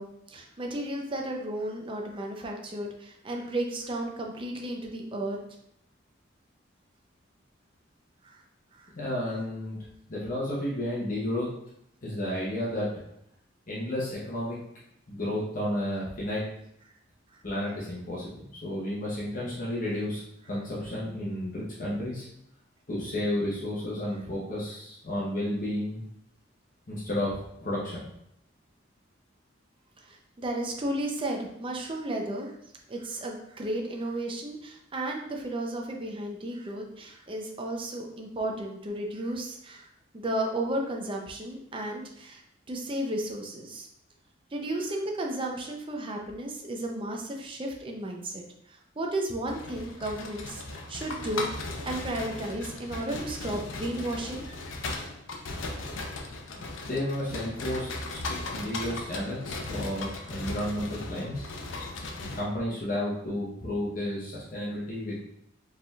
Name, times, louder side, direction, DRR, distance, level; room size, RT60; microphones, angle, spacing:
voice 1, 0.0-5.4 8.2-8.4 8.7-8.9 30.0-32.5 32.9-39.9 40.1-42.4 42.7-43.9 44.5-48.4 48.7-54.5, right 1 dB, 25° right, 1 dB, 0.5 m, -33 dB
voice 2, 8.9-9.8 10.1-11.5 12.0-12.9 13.7-14.6 15.1-16.4 17.4-22.3 22.9-26.0 26.9-28.0 56.5-61.4 62.2-65.2, left 1 dB, 45° left, -6 dB, 0.9 m, -32 dB
sound 1, 49.4-62.4, left 2 dB, 80° left, 0.6 m, -37 dB
4.8 x 3.4 x 2.3 m, 0.73 s
head